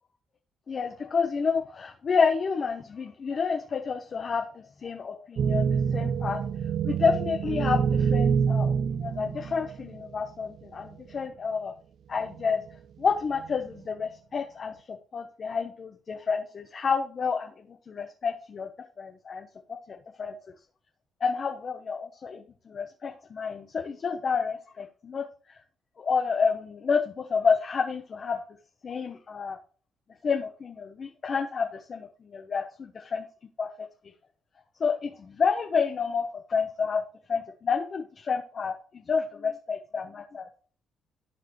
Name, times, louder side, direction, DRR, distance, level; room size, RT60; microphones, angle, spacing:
voice 1, 0.7-6.4 6.8-11.7 12.1-12.6 13.0-18.7 19.0-20.5 21.2-25.6 26.0-28.4 28.8-29.6 30.2-33.2 33.6-33.9 34.8-37.0 37.3-40.5, left 5 dB, 45° left, 3 dB, 1.0 m, -29 dB
sound 1, 5.4-10.1 10.9-11.0 12.2-12.7 13.3-13.8, right 6 dB, 60° right, 0.5 m, -26 dB
14.0 x 4.7 x 3.2 m, 0.40 s
cardioid pair, 90°, 0 cm